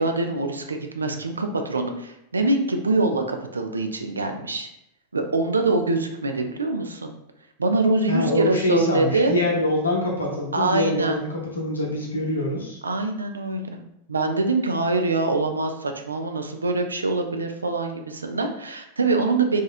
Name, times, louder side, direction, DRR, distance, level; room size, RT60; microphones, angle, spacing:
voice 1, 0.0-4.7 5.1-7.1 7.6-9.4 10.5-11.2 12.8-13.8 14.1-19.6, right 3 dB, 75° right, 5 dB, 0.3 m, -24 dB
voice 2, 8.1-12.8, left 1 dB, 80° left, -2 dB, 0.7 m, -25 dB
2.8 x 2.3 x 2.5 m, 0.82 s
figure-of-eight pair, 90°, 0 cm